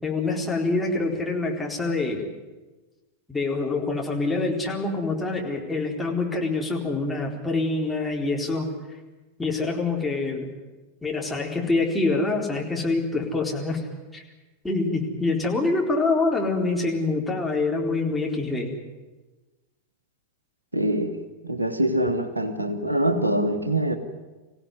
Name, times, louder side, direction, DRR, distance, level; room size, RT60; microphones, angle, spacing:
voice 1, 0.0-2.2 3.3-8.7 9.4-10.5 11.0-13.9 14.1-14.2 14.6-18.7, left 3 dB, 5° left, -1 dB, 4.2 m, -25 dB
voice 2, 20.7-21.2 21.4-24.0, right 1 dB, 85° right, 9 dB, 1.6 m, -24 dB
25.5 x 16.5 x 9.4 m, 1.2 s
figure-of-eight pair, 90°, 0 cm